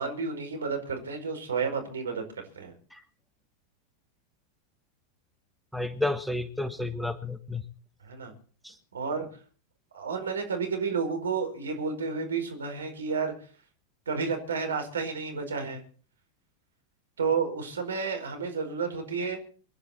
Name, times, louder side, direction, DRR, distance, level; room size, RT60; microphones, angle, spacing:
voice 1, 0.0-2.2 2.5-2.7 8.0-8.3 8.9-9.3 9.9-13.3 14.1-15.8 17.2-19.4, right 5 dB, 70° right, 5 dB, 4.9 m, -31 dB
voice 2, 5.7-7.6 8.6-8.7, left 2 dB, ahead, 11 dB, 1.3 m, -31 dB
24.5 x 11.0 x 4.3 m, 0.43 s
figure-of-eight pair, 90°, 0 cm